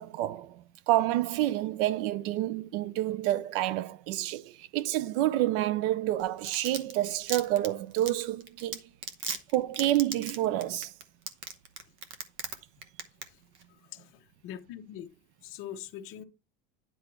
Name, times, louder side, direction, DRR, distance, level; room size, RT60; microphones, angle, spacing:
voice 1, 0.1-8.8 9.5-10.9, right 14 dB, 70° right, 0.7 m, -28 dB
Domestic sounds home sounds, 6.2-12.5 12.8-13.2 13.5-13.6, right 6 dB, 40° right, 1.1 m, -36 dB
voice 2, 13.7-15.1 15.4-16.2, left 10 dB, 45° left, 0.9 m, -43 dB
10.0 x 3.9 x 4.5 m
supercardioid pair, 150°, 29 cm